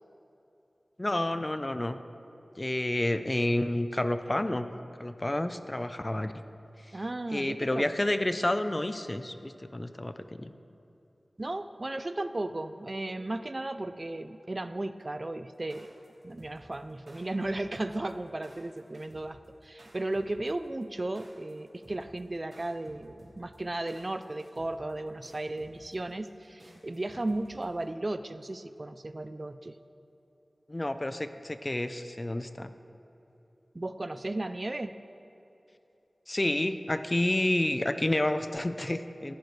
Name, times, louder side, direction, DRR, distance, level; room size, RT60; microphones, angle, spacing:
voice 1, 1.0-2.0 2.6-4.7 5.0-6.3 7.3-10.5 30.7-32.7 36.3-39.3, left 1 dB, 30° left, 10 dB, 0.6 m, -29 dB
voice 2, 6.9-7.9 11.4-15.9 16.2-29.8 33.7-34.9, right 2 dB, 40° right, 11 dB, 0.4 m, -35 dB
sound 1, 15.5-27.8, right 1 dB, 60° right, 3.1 m, -55 dB
15.5 x 15.0 x 3.2 m, 2.9 s
wide cardioid pair, 75°, 0 cm